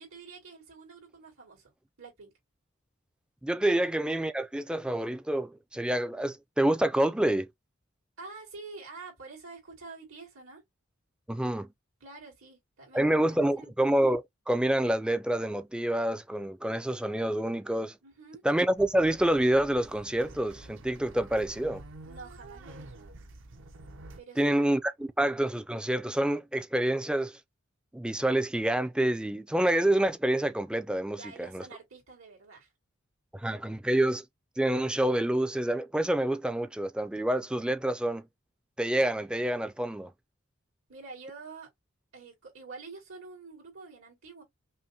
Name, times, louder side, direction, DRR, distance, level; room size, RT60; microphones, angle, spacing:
voice 1, 0.0-1.7 2.0-2.3 3.7-3.8 8.2-10.6 12.0-13.1 13.4-13.7 18.0-18.4 22.0-23.1 24.2-24.4 31.1-32.7 40.9-41.7 42.1-44.4, right 4 dB, 80° right, 2.4 m, -47 dB
voice 2, 3.4-7.5 11.3-11.7 12.9-17.9 18.4-21.8 24.4-27.3 27.9-31.2 31.5-31.6 33.3-34.2 34.6-38.2 38.8-40.1, right 1 dB, 5° right, 0.3 m, -27 dB
sound 1, 18.8-24.2, right 2 dB, 60° right, 0.7 m, -48 dB
5.5 x 2.1 x 2.6 m
head